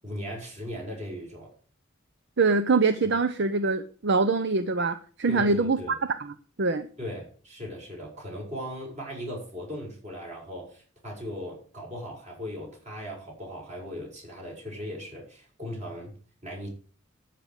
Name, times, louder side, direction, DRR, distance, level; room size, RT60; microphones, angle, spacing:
voice 1, 0.0-1.5 5.3-6.0 7.0-16.1 16.4-16.7, equal, 35° right, -1 dB, 7.1 m, -38 dB
voice 2, 2.4-6.9, right 3 dB, 60° right, 11 dB, 0.8 m, -24 dB
13.5 x 5.9 x 8.1 m, 0.42 s
head